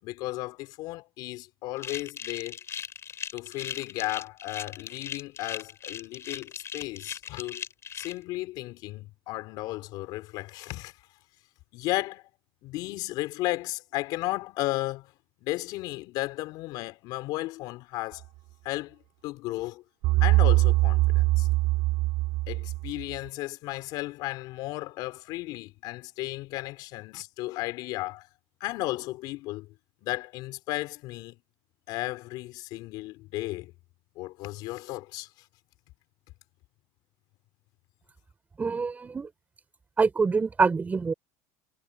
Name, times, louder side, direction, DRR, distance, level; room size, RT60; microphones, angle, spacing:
voice 1, 0.0-2.6 3.3-7.6 7.9-10.9 11.7-12.2 12.6-15.1 15.4-18.3 18.6-19.8 20.2-21.5 22.5-28.3 28.6-29.7 30.0-31.4 31.9-33.7 34.2-35.3, left 19 dB, 60° left, 4.1 m, -34 dB
sound 1, 1.8-8.1, left 8 dB, 35° left, 6.6 m, -38 dB
sound 2, 20.0-23.2, right 19 dB, 60° right, 4.3 m, -23 dB
voice 2, 38.6-39.3 40.0-41.1, right 4 dB, 20° right, 5.8 m, -25 dB
supercardioid pair, 110°, 8 cm